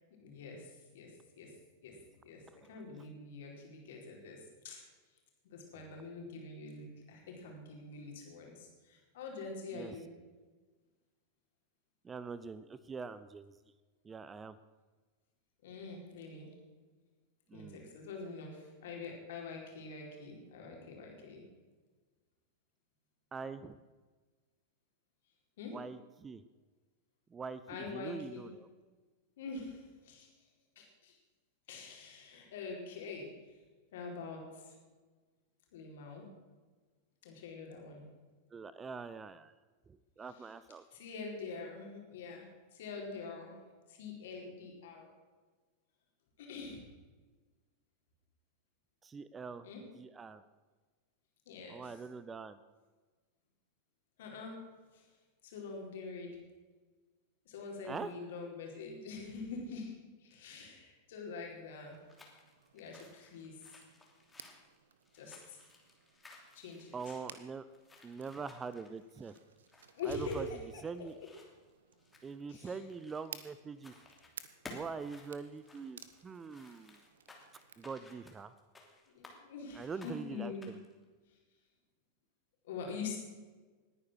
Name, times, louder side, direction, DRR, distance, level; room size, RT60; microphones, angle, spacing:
voice 1, 0.2-1.5 1.8-2.0 2.2-4.8 5.4-10.1 15.6-16.5 17.5-21.4 25.6-25.8 27.7-28.4 29.4-30.3 30.8-31.2 31.7-33.6 33.9-34.8 35.7-36.3 37.2-38.0 40.9-42.5 42.7-43.5 43.9-45.1 46.4-46.9 49.6-49.8 51.5-51.9 54.2-54.6 54.9-55.1 55.4-56.4 57.5-60.0 60.2-62.0 62.7-63.6 65.1-65.6 66.5-67.2 69.9-70.6 72.5-72.8 79.1-80.7 82.6-83.2, left 4 dB, 55° left, 0 dB, 4.4 m, -45 dB
voice 2, 12.0-13.6 14.0-14.6 17.5-17.8 23.3-23.8 25.7-26.4 27.3-28.7 38.5-39.5 39.9-40.8 49.0-49.7 50.0-50.4 51.7-52.6 57.8-58.1 66.9-67.7 68.0-69.3 70.0-70.5 70.8-71.1 72.2-73.9 74.7-77.0 77.8-78.5 79.7-80.8, right 5 dB, 20° right, 15 dB, 0.6 m, -44 dB
sound 1, 61.7-77.9, right 8 dB, 65° right, 1.1 m, -57 dB
sound 2, 61.9-73.5 73.8-74.3 74.6-79.4 79.8-80.9, left 3 dB, 10° left, 3.0 m, -57 dB
20.0 x 9.7 x 6.3 m, 1.4 s
figure-of-eight pair, 90°, 0 cm